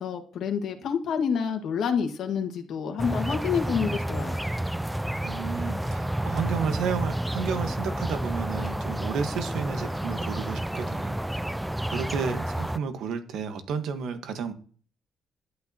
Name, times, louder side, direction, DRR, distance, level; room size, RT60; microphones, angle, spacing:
voice 1, 0.0-4.4, left 7 dB, 70° left, 5 dB, 1.6 m, -28 dB
sound 1, 3.0-12.8, right 1 dB, 5° right, 0.3 m, -30 dB
voice 2, 5.2-11.4 11.9-14.5, right 6 dB, 80° right, 8 dB, 1.3 m, -32 dB
11.5 x 8.4 x 2.8 m, 0.43 s
cardioid pair, 90°, 0 cm